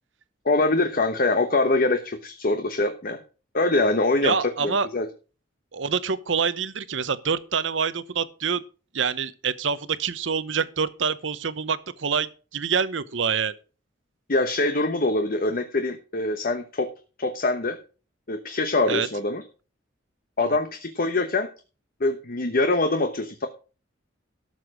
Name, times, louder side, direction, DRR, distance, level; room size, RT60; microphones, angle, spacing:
voice 1, 0.4-3.2 3.5-5.1 14.3-16.9 17.2-17.8 18.3-19.4 20.4-21.5 22.0-23.5, left 2 dB, 50° left, 1.0 m, -24 dB
voice 2, 4.2-4.9 5.7-8.6 8.9-13.5 18.9-19.1, right 6 dB, 75° right, 0.9 m, -26 dB
13.0 x 6.8 x 6.2 m
head